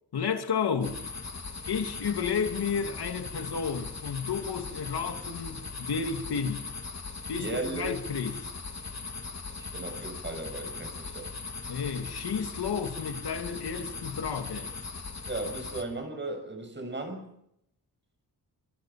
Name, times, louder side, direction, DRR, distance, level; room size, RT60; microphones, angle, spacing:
voice 1, 0.1-1.0 1.7-6.7 7.3-8.5 11.6-14.7, left 6 dB, 80° left, 2.7 m, -32 dB
sound 1, 0.8-15.8, left 4 dB, 45° left, 3.2 m, -39 dB
voice 2, 7.3-7.9 9.7-11.3 15.3-17.3, right 2 dB, 30° right, 6.9 m, -36 dB
25.5 x 25.5 x 6.0 m
wide cardioid pair, 120°, 38 cm